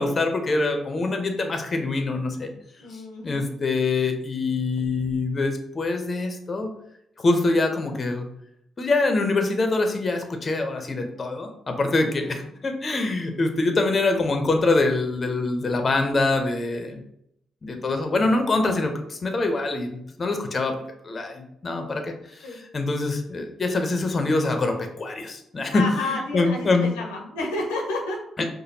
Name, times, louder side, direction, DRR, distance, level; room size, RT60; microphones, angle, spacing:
voice 1, 0.0-2.5 3.2-6.7 7.2-8.3 8.8-17.0 17.6-20.8 21.0-26.9 28.4-28.5, left 3 dB, 45° left, 5 dB, 0.7 m, -24 dB
voice 2, 2.8-3.5 12.0-12.5 22.4-22.6 25.7-28.2, left 2 dB, 90° left, 0 dB, 0.7 m, -31 dB
4.9 x 2.1 x 2.8 m, 0.75 s
hypercardioid pair, 45°, 0 cm